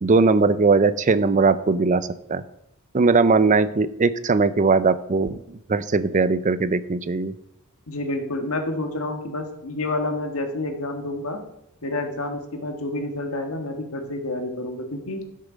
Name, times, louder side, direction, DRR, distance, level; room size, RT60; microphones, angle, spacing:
voice 1, 0.0-2.4 2.9-5.4 5.7-7.3, right 4 dB, 35° right, 14 dB, 0.5 m, -19 dB
voice 2, 7.9-11.4 11.8-15.2, left 2 dB, 70° left, 5 dB, 1.5 m, -29 dB
12.0 x 6.6 x 5.0 m, 0.82 s
head